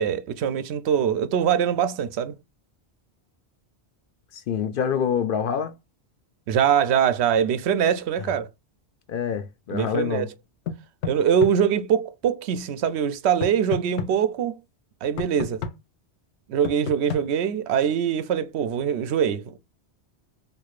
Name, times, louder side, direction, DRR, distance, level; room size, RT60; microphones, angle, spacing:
voice 1, 0.0-2.4 6.5-8.5 9.7-10.3 11.0-14.6 15.0-15.6 16.5-19.6, right 8 dB, 80° right, 0.8 m, -23 dB
voice 2, 4.3-5.7 9.1-10.3, left 7 dB, 60° left, 0.7 m, -26 dB
sound 1, 10.7-11.5 13.4-14.1 15.2-15.7 16.6-17.2, left 6 dB, 85° left, 0.9 m, -30 dB
4.6 x 2.6 x 2.4 m
omnidirectional pair, 1.1 m